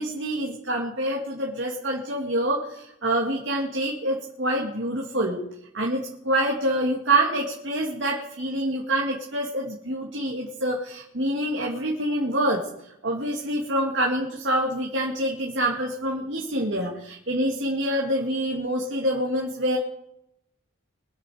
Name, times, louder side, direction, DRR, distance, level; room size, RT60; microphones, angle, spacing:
voice 1, 0.0-5.4 5.7-12.6 13.0-19.8, right 1 dB, 55° right, -1 dB, 2.3 m, -26 dB
24.0 x 8.5 x 5.1 m, 0.80 s
head